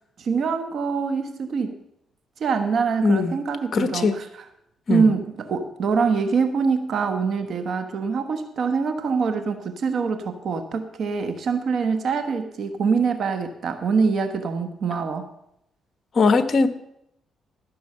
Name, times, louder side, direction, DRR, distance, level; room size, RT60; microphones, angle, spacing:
voice 1, 0.2-1.7 2.4-4.2 4.9-15.3, right 5 dB, 60° right, 7 dB, 1.2 m, -24 dB
voice 2, 3.0-3.4 3.7-4.2 4.9-5.1 16.1-16.7, left 4 dB, 45° left, 9 dB, 1.2 m, -19 dB
14.0 x 6.4 x 6.7 m, 0.79 s
cardioid pair, 90°, 0 cm